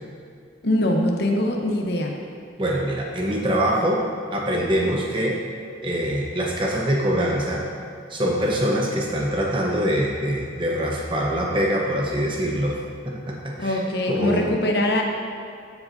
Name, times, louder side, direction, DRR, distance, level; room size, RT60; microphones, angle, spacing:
voice 1, 0.6-2.1 13.6-15.0, left 1 dB, 55° left, 1 dB, 0.8 m, -22 dB
voice 2, 2.6-4.0 4.3-5.4 5.8-7.6 8.1-12.8 13.0-13.8 14.1-14.5, equal, 25° right, -2 dB, 1.0 m, -24 dB
13.5 x 4.7 x 2.7 m, 2.3 s
head